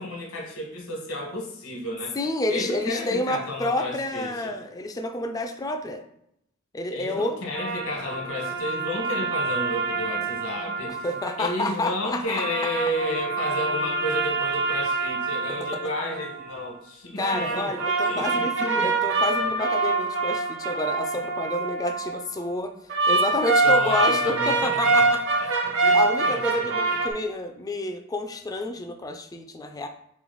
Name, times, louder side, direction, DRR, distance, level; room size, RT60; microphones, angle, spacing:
voice 1, 0.0-2.2 2.5-4.5 6.9-11.1 11.4-17.7 18.0-18.5 18.8-18.9 23.6-27.0, left 1 dB, 75° left, 0 dB, 1.2 m, -32 dB
voice 2, 2.2-6.0 6.7-7.3 11.0-12.5 17.2-22.7 23.1-25.2 25.9-29.9, left 1 dB, 15° left, 5 dB, 0.3 m, -29 dB
sound 1, 7.5-11.7 12.2-16.6 17.2-22.2 22.9-27.1, right 3 dB, 60° right, 0.7 m, -25 dB
3.7 x 3.1 x 3.9 m, 0.75 s
head